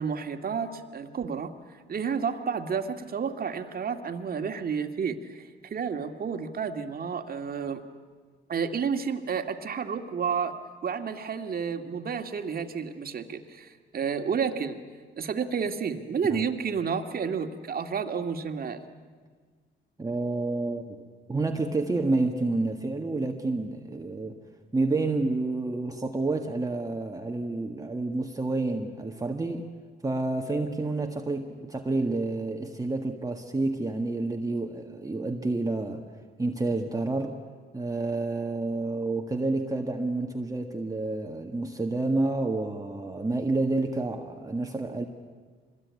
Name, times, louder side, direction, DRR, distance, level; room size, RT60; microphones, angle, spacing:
voice 1, 0.0-1.5 1.9-7.8 8.5-14.8 15.2-18.8, right 6 dB, 50° right, 6 dB, 2.1 m, -31 dB
voice 2, 20.0-21.0 21.3-24.4 24.7-29.7 30.0-36.0 36.4-37.4 37.7-45.0, right 2 dB, 15° right, 2 dB, 1.8 m, -29 dB
25.5 x 21.0 x 9.6 m, 1.6 s
cardioid pair, 90°, 20 cm